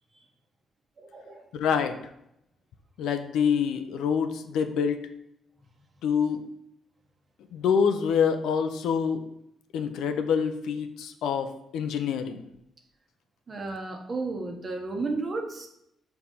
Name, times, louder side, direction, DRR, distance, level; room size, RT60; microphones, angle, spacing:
voice 1, 1.0-1.4 13.5-15.7, right 3 dB, 35° right, 3 dB, 1.2 m, -33 dB
voice 2, 1.5-2.0 3.0-5.1 6.0-6.4 7.5-9.2 9.7-12.4, left 7 dB, 80° left, 7 dB, 0.6 m, -26 dB
4.8 x 3.8 x 5.5 m, 0.78 s
cardioid pair, 90°, 0 cm